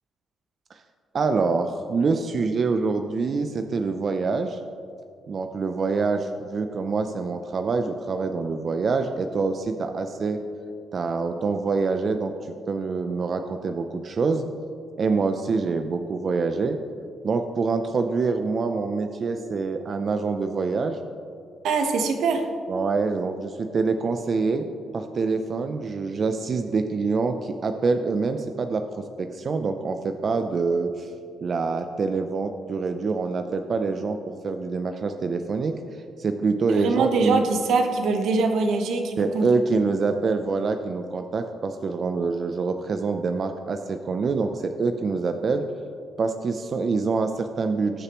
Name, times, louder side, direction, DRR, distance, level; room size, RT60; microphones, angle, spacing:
voice 1, 1.1-4.6 5.3-10.4 10.9-14.5 15.0-16.8 17.2-21.0 22.7-31.1 31.4-37.5 39.2-45.6 46.2-48.0, right 4 dB, 45° right, 6 dB, 0.5 m, -26 dB
voice 2, 21.6-22.5 36.7-39.5, right 4 dB, 80° right, 5 dB, 1.0 m, -23 dB
19.5 x 6.6 x 3.0 m, 2.4 s
cardioid pair, 110°, 0 cm